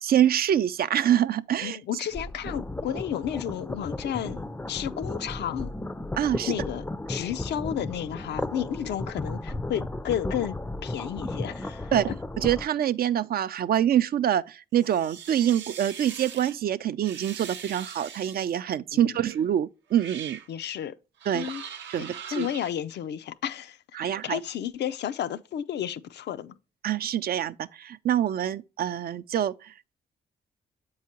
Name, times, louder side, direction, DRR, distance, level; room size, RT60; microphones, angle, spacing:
voice 1, 0.0-1.8 6.2-6.5 11.9-12.1 12.4-20.4 21.3-21.5 21.9-22.5 24.0-24.4 26.8-29.9, right 10 dB, 55° right, 0.4 m, -25 dB
voice 2, 1.6-5.7 6.5-12.0 18.9-19.2 20.5-21.0 21.3-21.6 22.0-26.6, left 10 dB, 70° left, 0.4 m, -32 dB
sound 1, 2.1-12.6, left 2 dB, 10° left, 0.4 m, -34 dB
sound 2, 14.8-16.5 17.0-18.6 19.3-19.4 19.9-20.5 21.2-22.7, right 8 dB, 80° right, 0.8 m, -41 dB
7.4 x 4.7 x 2.8 m
supercardioid pair, 55°, 18 cm